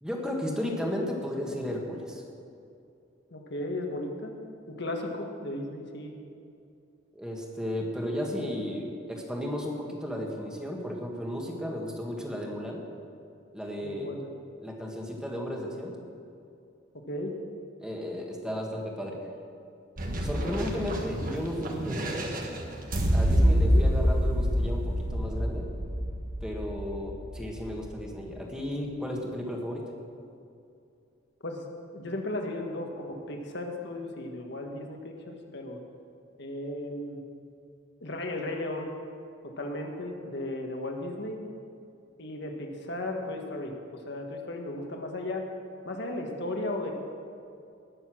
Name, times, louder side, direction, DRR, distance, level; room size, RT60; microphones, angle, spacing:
voice 1, 0.0-2.2 7.1-12.9 13.5-14.2 14.6-15.9 17.8-19.3 20.2-22.3 23.1-25.7 26.4-29.9, left 1 dB, 5° right, -1 dB, 1.7 m, -34 dB
voice 2, 3.3-4.4 4.7-6.1 13.8-14.3 17.1-17.3 23.4-23.8 31.4-31.6 31.9-35.8 36.4-37.2 38.0-38.9 39.6-41.4 42.2-45.5 45.9-47.0, left 1 dB, 60° left, 2 dB, 1.6 m, -35 dB
sound 1, 20.0-27.9, equal, 45° right, 1.5 m, -27 dB
19.5 x 7.0 x 6.2 m, 2.5 s
head